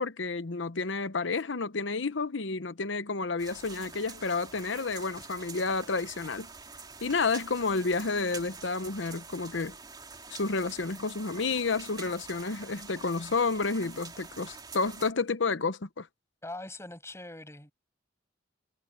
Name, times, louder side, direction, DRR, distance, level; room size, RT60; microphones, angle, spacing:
voice 1, 0.0-6.5 7.0-9.7 10.3-16.1, left 4 dB, 70° left, 0.9 m, -30 dB
sound 1, 3.4-15.1, right 4 dB, 20° right, 3.1 m, -46 dB
voice 2, 16.4-17.7, left 2 dB, 15° left, 7.4 m, -42 dB
head